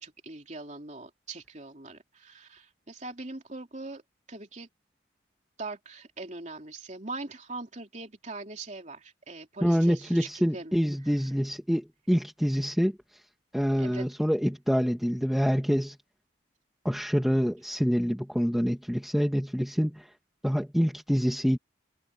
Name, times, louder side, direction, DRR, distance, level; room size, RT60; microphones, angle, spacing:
voice 1, 0.0-4.0 4.3-4.7 5.6-10.7 13.8-14.1, right 3 dB, 40° right, 3.2 m, -41 dB
voice 2, 9.6-13.2 13.5-16.0 16.8-20.1 20.4-21.6, equal, ahead, 1.8 m, -26 dB
head